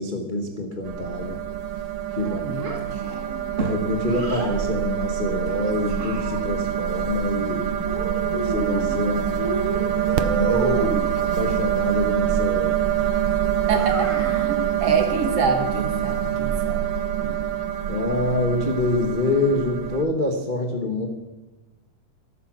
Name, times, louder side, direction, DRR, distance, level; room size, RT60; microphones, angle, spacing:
voice 1, 0.0-1.4 2.1-2.4 3.6-7.7 8.3-9.4 10.3-12.7 17.9-21.1, left 2 dB, 40° left, 2 dB, 0.7 m, -26 dB
sound 1, 0.8-20.0, right 10 dB, 80° right, 1.2 m, -25 dB
voice 2, 2.2-2.7 13.7-16.9 17.2-17.4, right 5 dB, 55° right, 5 dB, 2.1 m, -26 dB
Child speech kid speaking, 2.6-4.6 5.5-6.7 7.8-9.0 9.4-11.1 13.6-14.5, right 2 dB, 30° right, 1.9 m, -31 dB
14.0 x 13.0 x 6.2 m, 1.1 s
omnidirectional pair, 3.6 m